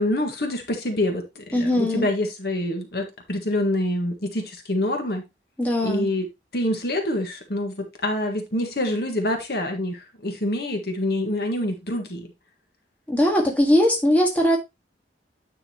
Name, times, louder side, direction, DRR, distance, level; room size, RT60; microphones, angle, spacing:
voice 1, 0.0-5.2 5.8-6.2 6.5-12.3, left 1 dB, 55° left, 1.7 m, -26 dB
voice 2, 1.5-2.1 5.6-6.1 13.1-14.6, equal, 10° left, 1.7 m, -20 dB
9.6 x 5.7 x 3.0 m
head